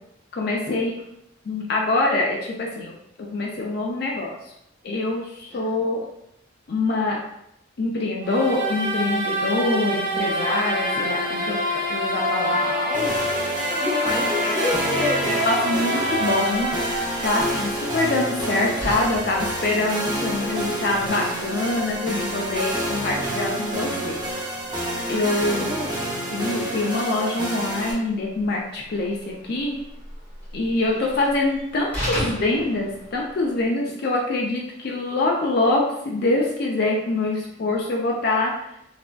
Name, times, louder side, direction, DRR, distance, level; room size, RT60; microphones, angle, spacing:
voice 1, 0.3-0.9 1.5-4.5 4.8-6.0 6.7-7.2 7.8-11.6 11.9-12.5 14.1-14.5 15.2-16.7 17.2-24.2 25.1-25.7 26.3-29.8 30.5-38.5, left 2 dB, 50° left, -1 dB, 0.4 m, -25 dB
sound 1, 8.2-18.2, equal, 55° right, 1.1 m, -26 dB
voice 2, 12.2-13.2 13.7-15.8 25.0-25.9 30.9-31.1, left 2 dB, 5° right, -9 dB, 1.1 m, -30 dB
sound 2, 12.9-27.9, right 1 dB, 20° right, 0.5 m, -28 dB
Slam, 16.5-33.7, equal, 10° left, 1.3 m, -39 dB
3.2 x 2.5 x 2.2 m, 0.79 s
head